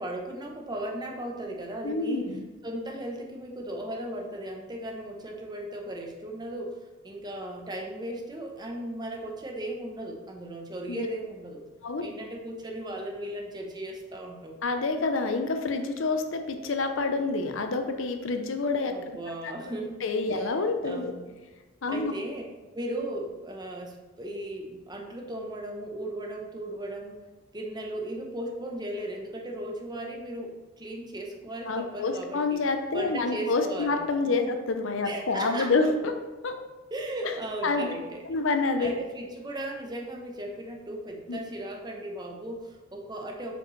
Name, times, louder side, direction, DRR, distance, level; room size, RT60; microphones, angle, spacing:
voice 1, 0.0-2.3 2.6-6.8 7.0-11.6 12.0-14.6 18.9-20.0 20.3-20.5 20.8-21.3 21.9-27.2 27.5-32.6 32.9-34.0 34.3-34.6 35.0-35.9 36.9-38.2 38.8-43.6, right 1 dB, 20° right, 1 dB, 0.8 m, -36 dB
voice 2, 1.8-2.5 10.9-11.1 11.8-12.0 14.6-19.2 20.0-21.1 21.8-22.1 31.7-34.4 34.7-36.1 36.4-36.5 37.6-37.9 38.3-38.9 41.3-41.4, left 3 dB, 70° left, 6 dB, 0.7 m, -27 dB
6.5 x 5.2 x 3.2 m, 1.2 s
head